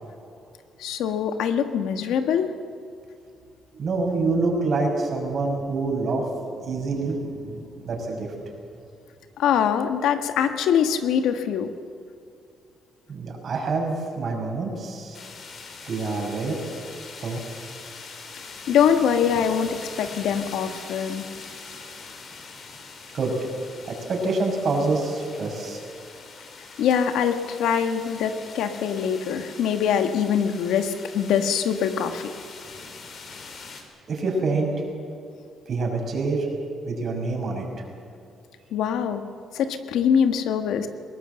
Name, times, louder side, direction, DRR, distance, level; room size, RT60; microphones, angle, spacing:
voice 1, 0.8-2.5 9.4-11.7 18.7-21.2 26.8-32.3 38.7-39.2 39.5-40.9, left 8 dB, 85° left, 7 dB, 1.4 m, -23 dB
voice 2, 3.8-6.3 6.6-8.3 13.1-15.2 15.9-16.5 17.2-17.4 23.1-23.3 23.9-25.8 34.1-34.7 35.7-36.5 36.9-37.7, right 3 dB, 55° right, 1 dB, 5.9 m, -26 dB
sound 1, 15.1-33.8, left 4 dB, 55° left, 3.5 m, -42 dB
20.5 x 18.0 x 8.0 m, 2.5 s
cardioid pair, 90°, 0 cm